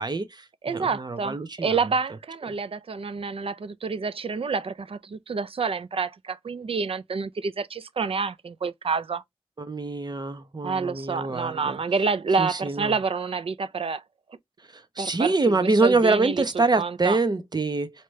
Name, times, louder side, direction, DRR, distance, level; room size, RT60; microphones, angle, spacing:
voice 1, 0.0-1.8 9.6-11.8 12.4-13.0 14.7-17.9, right 3 dB, 45° right, 0.9 m, -25 dB
voice 2, 0.6-9.2 10.6-14.0 15.0-17.2, right 5 dB, 70° right, 0.5 m, -28 dB
4.8 x 2.9 x 3.2 m
wide cardioid pair, 65°, 10 cm